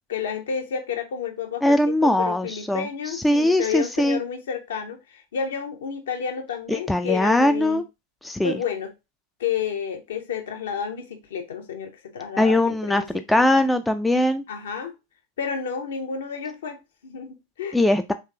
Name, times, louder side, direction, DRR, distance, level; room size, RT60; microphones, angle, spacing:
voice 1, 0.1-7.8 8.4-8.9 9.4-13.6 14.5-14.9 15.4-17.8, left 7 dB, 60° left, 0.8 m, -31 dB
voice 2, 1.6-2.9 3.2-4.2 6.7-7.8 8.2-8.5 12.4-14.4 17.7-18.1, left 1 dB, 5° left, 0.3 m, -20 dB
3.4 x 3.2 x 2.7 m
figure-of-eight pair, 90°, 0 cm